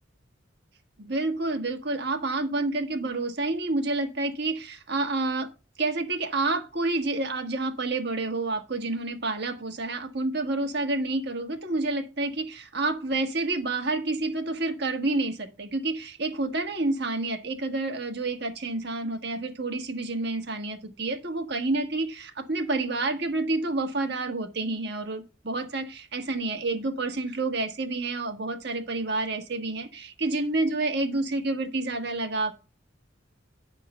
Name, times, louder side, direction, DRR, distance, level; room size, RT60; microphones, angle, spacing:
voice 1, 1.0-5.5 5.8-32.5, right 2 dB, 60° right, 5 dB, 1.4 m, -29 dB
9.3 x 3.7 x 6.5 m, 0.31 s
head